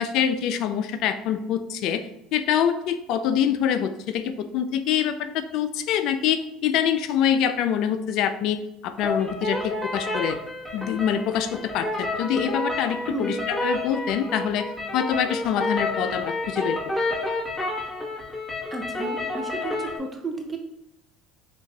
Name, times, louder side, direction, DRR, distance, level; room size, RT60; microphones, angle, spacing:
voice 1, 0.0-2.0 2.3-8.6 8.8-10.4 10.7-14.7 14.9-16.8, left 9 dB, 65° left, 10 dB, 0.3 m, -25 dB
sound 1, 9.0-20.0, left 2 dB, 5° left, 1.2 m, -30 dB
voice 2, 18.7-20.6, right 2 dB, 20° right, 3 dB, 0.6 m, -33 dB
7.0 x 2.4 x 2.2 m, 0.84 s
supercardioid pair, 90°, 0 cm